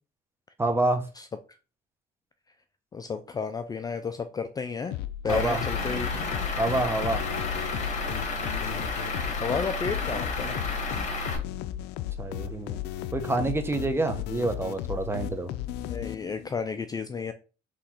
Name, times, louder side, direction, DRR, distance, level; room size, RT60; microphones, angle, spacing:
voice 1, 0.6-1.0 5.3-5.6 6.6-7.2 12.2-12.8 13.1-15.5, right 2 dB, 15° right, 0.9 m, -27 dB
voice 2, 2.9-5.0 5.2-6.3 9.4-10.6 15.8-17.3, left 5 dB, 20° left, 0.4 m, -32 dB
sound 1, 4.9-16.5, left 12 dB, 85° left, 0.4 m, -35 dB
Truck / Idling, 5.3-11.4, left 2 dB, 45° left, 1.5 m, -31 dB
4.0 x 3.1 x 4.3 m
cardioid pair, 110°, 17 cm